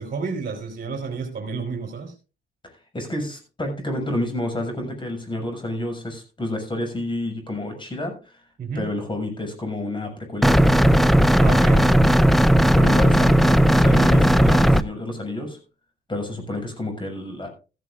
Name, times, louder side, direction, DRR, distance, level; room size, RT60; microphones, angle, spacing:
voice 1, 0.0-2.1 8.6-8.9 11.4-12.0, right 5 dB, 45° right, 2 dB, 3.7 m, -31 dB
voice 2, 2.6-8.4 8.7-10.6 12.7-15.6 16.1-17.5, left 1 dB, 25° left, 4 dB, 6.6 m, -29 dB
sound 1, 10.4-14.8, equal, ahead, 0.7 m, -15 dB
15.0 x 15.0 x 2.5 m, 0.33 s
cardioid pair, 90°, 20 cm